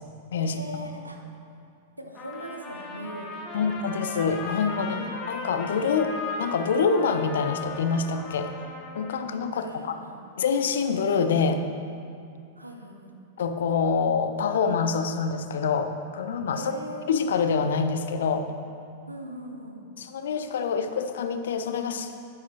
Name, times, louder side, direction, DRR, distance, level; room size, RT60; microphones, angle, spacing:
voice 1, 0.4-1.2 2.0-3.3 3.5-3.6 4.8-5.3 9.5-10.2 12.6-13.1 16.5-17.0 19.1-19.8, equal, 85° right, 3 dB, 0.9 m, -40 dB
Trumpet, 2.1-9.3, left 3 dB, 30° left, 1.3 m, -37 dB
voice 2, 3.5-5.0 5.3-8.5 9.0-9.9 10.4-11.6 13.4-16.7 17.1-18.5 20.0-22.2, left 5 dB, 60° left, 8 dB, 0.5 m, -26 dB
9.7 x 9.6 x 3.0 m, 2.5 s
figure-of-eight pair, 95°, 0 cm